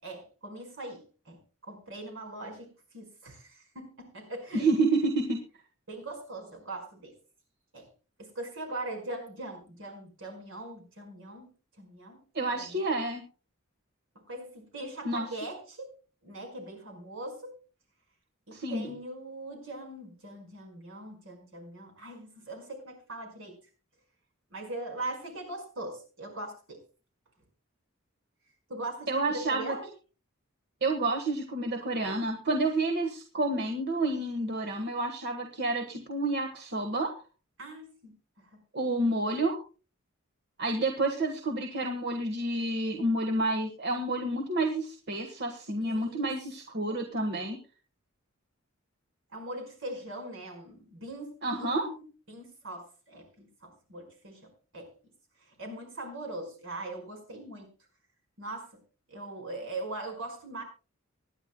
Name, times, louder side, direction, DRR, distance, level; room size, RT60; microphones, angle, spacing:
voice 1, 0.0-4.7 5.9-7.1 7.7-7.9 8.2-11.5 11.8-12.2 12.5-12.9 14.3-15.9 16.2-17.5 18.5-23.6 24.5-26.8 28.7-29.9 37.6-38.1 38.4-38.6 45.8-46.3 49.3-54.9 55.4-57.7 58.4-58.8 59.1-60.6, right 2 dB, 70° right, 3 dB, 5.1 m, -41 dB
voice 2, 4.5-5.4 12.3-13.2 15.0-15.3 18.5-18.9 29.1-29.7 30.8-37.1 38.7-39.6 40.6-47.6 51.4-51.9, right 2 dB, 55° right, 3 dB, 1.5 m, -29 dB
24.5 x 10.5 x 2.2 m, 0.35 s
head